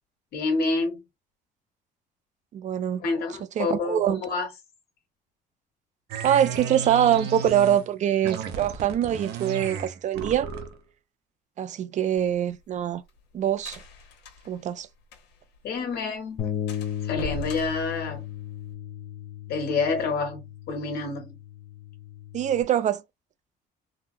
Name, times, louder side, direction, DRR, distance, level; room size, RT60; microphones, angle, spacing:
voice 1, 0.3-1.0 3.0-4.5 15.6-16.5 17.0-18.3 19.5-21.4, left 4 dB, 70° left, 1.5 m, -28 dB
voice 2, 2.5-3.0 3.6-4.2 6.2-10.5 11.6-13.0 13.3-13.8 14.5-14.9 22.3-23.0, right 10 dB, 45° right, 0.4 m, -24 dB
sound 1, 6.1-7.9 8.2-10.8, right 6 dB, 75° right, 0.8 m, -34 dB
sound 2, 12.2-15.6 15.9-16.0 16.2-16.4 16.7-18.7, left 2 dB, 85° left, 1.1 m, -41 dB
Bass guitar, 16.4-22.6, left 10 dB, 45° left, 0.7 m, -36 dB
3.7 x 2.0 x 2.6 m
cardioid pair, 110°, 17 cm